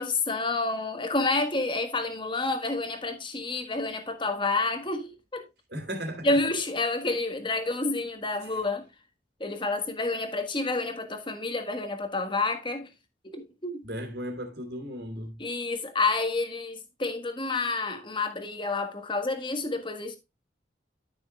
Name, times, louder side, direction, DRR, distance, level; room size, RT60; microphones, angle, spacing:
voice 1, 0.0-5.4 6.2-8.9 9.4-12.9 13.2-13.9 15.4-20.2, left 3 dB, 25° left, 1.5 m, -29 dB
voice 2, 5.7-6.4 8.5-8.6 13.8-15.4, equal, 60° right, 3.1 m, -36 dB
12.5 x 6.4 x 2.3 m
head